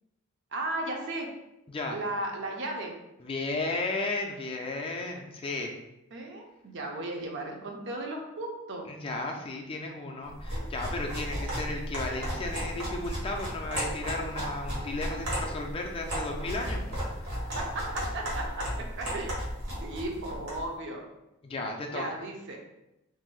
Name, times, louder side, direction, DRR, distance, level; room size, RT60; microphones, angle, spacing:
voice 1, 0.5-1.3 1.9-2.9 6.1-8.9 17.6-19.5 19.8-21.0 21.9-22.6, right 2 dB, 55° right, 2 dB, 0.5 m, -35 dB
voice 2, 1.7-2.0 3.2-5.7 8.9-17.0 17.3-17.5 21.4-22.0, left 2 dB, 25° left, 1 dB, 0.3 m, -34 dB
sound 1, 10.3-20.7, equal, 80° right, 1.1 m, -34 dB
2.6 x 2.0 x 3.8 m, 0.89 s
head